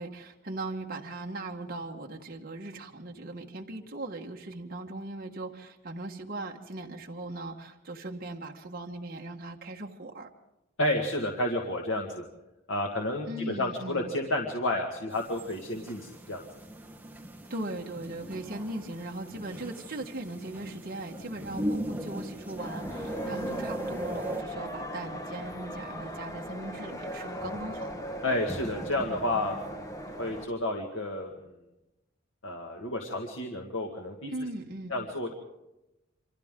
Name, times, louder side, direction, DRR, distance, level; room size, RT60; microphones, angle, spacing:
voice 1, 0.0-10.3 13.3-14.1 17.5-27.9 34.3-35.0, right 2 dB, 50° right, 1 dB, 1.5 m, -39 dB
voice 2, 10.8-12.2 12.7-16.5 28.2-31.3 32.4-34.3 34.9-35.3, left 1 dB, 80° left, 1 dB, 1.9 m, -31 dB
sound 1, 15.1-24.4, right 1 dB, 10° right, 1.3 m, -38 dB
sound 2, 22.6-30.5, equal, 15° left, 1.5 m, -38 dB
28.0 x 25.0 x 3.8 m, 0.97 s
head